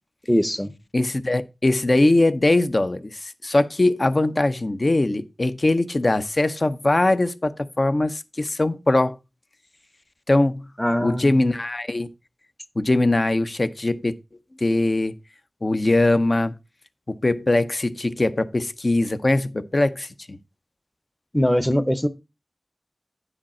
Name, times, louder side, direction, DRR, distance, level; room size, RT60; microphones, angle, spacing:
voice 1, 0.3-0.7 10.8-11.4 21.3-22.1, equal, 5° left, 0.7 m, -21 dB
voice 2, 0.9-9.2 10.3-10.6 11.0-12.1 12.8-14.1 14.6-15.1 15.6-16.5 17.1-20.4, left 2 dB, 45° left, 0.6 m, -21 dB
9.6 x 5.1 x 4.3 m
wide cardioid pair, 70°, 0 cm